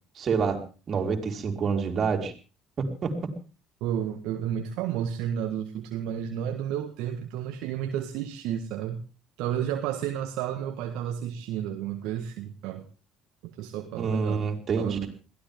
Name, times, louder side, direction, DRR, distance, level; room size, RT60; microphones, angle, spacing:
voice 1, 0.2-0.6 0.9-2.3 3.0-3.1 14.0-15.1, right 5 dB, 45° right, 2 dB, 4.2 m, -27 dB
voice 2, 3.8-9.0 9.4-12.8 13.4-14.5 14.8-15.1, right 10 dB, 70° right, 5 dB, 1.5 m, -31 dB
22.0 x 16.5 x 3.8 m, 0.35 s
hypercardioid pair, 65°, 0 cm